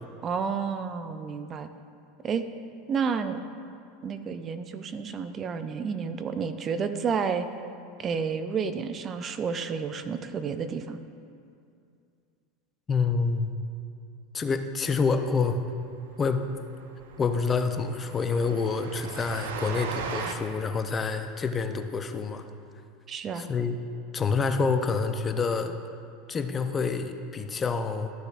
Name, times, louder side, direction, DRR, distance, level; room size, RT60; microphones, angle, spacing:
voice 1, 0.2-1.7 2.2-2.4 2.9-3.4 4.0-7.5 8.0-11.0 23.1-23.5, right 6 dB, 35° right, 10 dB, 0.5 m, -30 dB
voice 2, 12.9-13.6 14.3-15.6 16.2-16.5 17.2-22.4 23.3-23.8 24.1-25.8 26.3-28.1, left 4 dB, 25° left, 8 dB, 0.6 m, -27 dB
Train, 15.8-15.9 16.1-16.3 16.5-16.6 17.0-20.3, right 5 dB, 75° right, 0.6 m, -37 dB
13.5 x 6.5 x 2.4 m, 2.4 s
hypercardioid pair, 95°, 0 cm